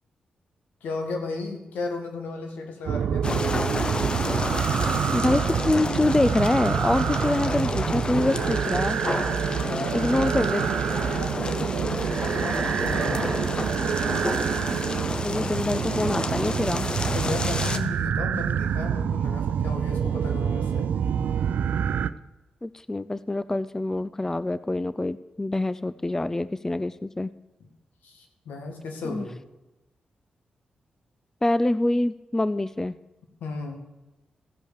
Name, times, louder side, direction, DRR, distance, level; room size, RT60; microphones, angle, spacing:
voice 1, 0.8-3.5 9.5-10.3 11.0-13.4 17.1-20.9 27.6-27.7 28.0-29.4 33.4-33.9, left 3 dB, 90° left, 3 dB, 1.9 m, -35 dB
sound 1, 2.9-22.1, right 8 dB, 80° right, 0.4 m, -27 dB
sound 2, 3.2-17.8, left 2 dB, 35° left, 0.9 m, -31 dB
voice 2, 5.1-9.0 9.9-10.6 15.2-16.9 22.6-27.3 29.0-29.3 31.4-33.0, left 2 dB, 15° left, 15 dB, 0.4 m, -25 dB
15.5 x 5.4 x 6.6 m, 1.0 s
cardioid pair, 70°, 3 cm